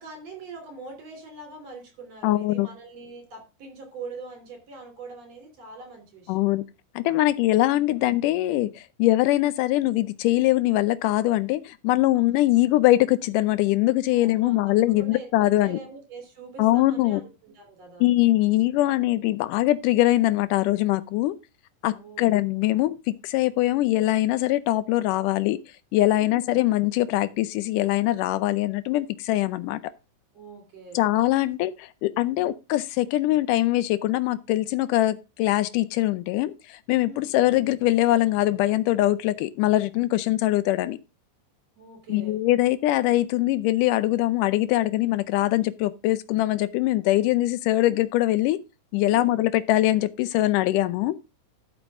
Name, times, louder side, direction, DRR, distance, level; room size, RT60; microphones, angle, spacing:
voice 1, 0.0-6.5 7.6-7.8 14.1-15.3 15.6-18.1 21.9-22.4 26.2-26.5 30.3-31.1 37.0-37.4 41.8-42.4 49.0-49.4, right 3 dB, 50° right, 4.1 m, -43 dB
voice 2, 2.2-2.7 6.3-6.6 7.0-15.8 16.6-17.2 18.0-21.4 21.8-25.6 25.9-29.8 31.0-36.5 36.9-41.0 42.1-48.6 48.9-51.2, left 16 dB, 80° left, 2.2 m, -22 dB
12.5 x 6.1 x 3.5 m
omnidirectional pair, 3.9 m